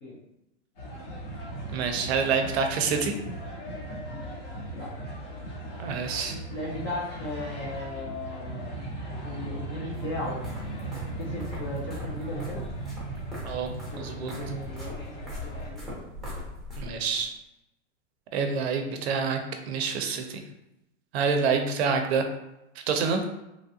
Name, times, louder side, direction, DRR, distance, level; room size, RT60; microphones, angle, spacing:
sound 1, 0.8-15.7, right 2 dB, 40° left, 0.9 m, -37 dB
voice 1, 1.7-3.1 5.8-6.4 13.4-13.7 14.0-14.3 16.8-17.3 18.3-20.4 21.1-22.2 22.9-23.2, right 5 dB, 55° right, 5 dB, 0.6 m, -27 dB
voice 2, 6.5-8.7 9.2-10.4 11.2-12.6 13.9-14.9 15.2-15.3 15.5-16.3, left 2 dB, 20° left, -6 dB, 0.4 m, -36 dB
sound 2, 9.9-17.2, left 1 dB, ahead, 0.8 m, -42 dB
3.1 x 2.3 x 2.7 m, 0.90 s
supercardioid pair, 150°, 37 cm